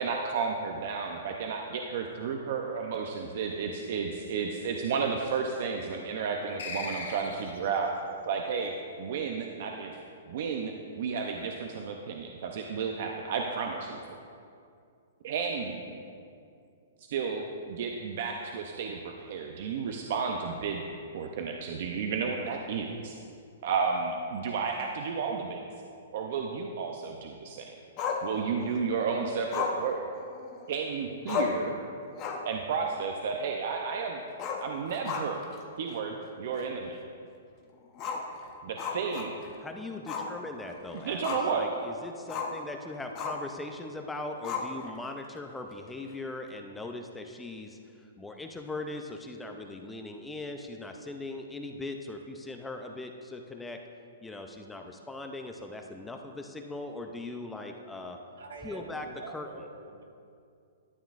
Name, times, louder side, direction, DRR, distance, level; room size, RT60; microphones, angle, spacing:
voice 1, 0.0-7.9 8.3-8.7 9.0-9.9 10.3-14.0 15.2-16.0 17.1-20.8 21.1-23.1 23.6-25.6 26.1-27.7 28.2-30.0 30.7-31.8 32.4-34.2 34.6-35.4 35.8-37.0 38.6-39.4 41.1-41.7, right 5 dB, 55° right, 2 dB, 0.5 m, -32 dB
sound 1, 6.6-7.8, left 4 dB, 85° left, 1.4 m, -38 dB
Growling, 28.0-28.8 29.5-30.7 31.0-31.1 31.3-31.7 32.1-32.6 32.9-33.0 34.3-35.6 35.9-36.0 36.5-36.6 37.9-39.6 40.1-40.3 40.7-41.6 42.3-42.6 43.1-43.5 44.4-45.1, left 6 dB, 30° left, 0.8 m, -34 dB
voice 2, 39.6-53.8 54.2-58.2 58.6-59.7, left 2 dB, 5° left, 4 dB, 0.4 m, -40 dB
voice 3, 58.4-60.0, right 3 dB, 85° right, 2 dB, 1.3 m, -45 dB
12.5 x 7.1 x 2.5 m, 2.4 s
hypercardioid pair, 150°, 0 cm